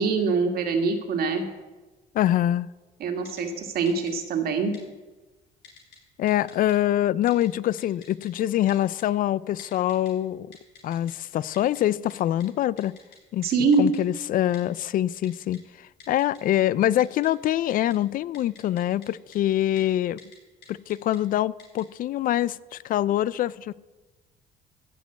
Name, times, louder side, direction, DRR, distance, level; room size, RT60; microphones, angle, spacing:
voice 1, 0.0-1.5 3.0-4.7 13.4-13.9, right 4 dB, 65° right, 4 dB, 2.0 m, -24 dB
voice 2, 2.1-2.7 6.2-10.5 10.8-12.9 13.3-13.5 13.8-20.2 20.7-23.7, left 12 dB, 55° left, 21 dB, 0.4 m, -25 dB
Typing, 3.3-3.4 3.9-4.1 4.7-4.8 5.6-6.0 6.3-6.7 7.3-7.5 7.8-8.3 8.7-9.0 9.6-10.1 10.5-11.1 11.5-11.8 12.1-12.2 12.4-12.5 12.8-13.2 13.4-13.5 13.7-14.0 14.5-14.6 15.2-15.6 16.0-16.6 16.9-18.0 18.3-19.1 19.3-19.4 19.8-19.9 20.2-20.4 20.6-21.2 21.6-21.8, left 6 dB, 90° left, 4.2 m, -49 dB
15.5 x 5.3 x 7.9 m, 1.2 s
cardioid pair, 110°, 17 cm